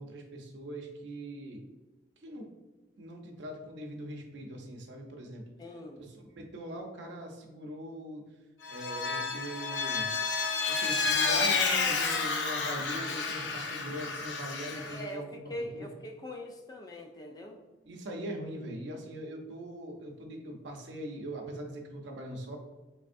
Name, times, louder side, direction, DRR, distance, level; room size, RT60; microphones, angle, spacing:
voice 1, 0.0-1.6 2.2-2.5 3.0-5.4 6.0-8.2 8.7-10.1 10.7-15.2 15.7-15.9 17.8-22.6, right 1 dB, 75° right, 1 dB, 0.7 m, -41 dB
voice 2, 5.6-6.0 14.7-17.6, equal, 20° left, 3 dB, 0.4 m, -42 dB
Vehicle, 8.6-15.0, left 4 dB, 75° left, 0.5 m, -30 dB
4.3 x 3.4 x 2.5 m, 1.2 s
head